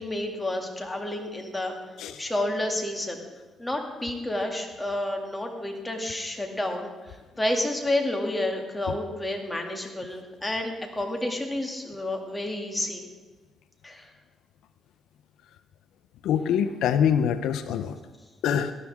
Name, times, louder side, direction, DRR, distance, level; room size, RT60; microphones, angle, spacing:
voice 1, 0.0-3.2 3.6-13.0 13.8-14.1, left 1 dB, 10° left, 1 dB, 2.4 m, -30 dB
voice 2, 16.2-18.0 18.4-18.7, left 8 dB, 85° left, 11 dB, 0.6 m, -24 dB
18.0 x 12.5 x 3.6 m, 1.3 s
cardioid pair, 90°, 0 cm